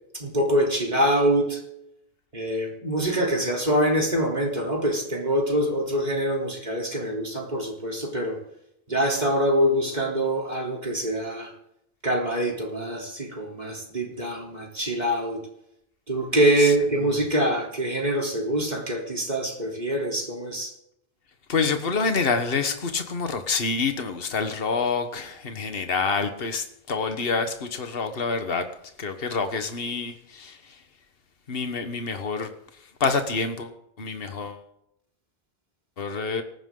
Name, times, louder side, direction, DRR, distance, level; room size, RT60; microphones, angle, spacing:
voice 1, 0.1-1.6 2.3-8.4 8.9-11.5 12.0-15.4 16.1-20.7, right 1 dB, 45° right, 3.9 m, -24 dB
voice 2, 21.5-28.6 29.0-30.8 31.5-32.5 33.0-34.6 36.0-36.4, left 4 dB, 65° left, 1.5 m, -27 dB
18.5 x 15.0 x 3.9 m
omnidirectional pair, 1.1 m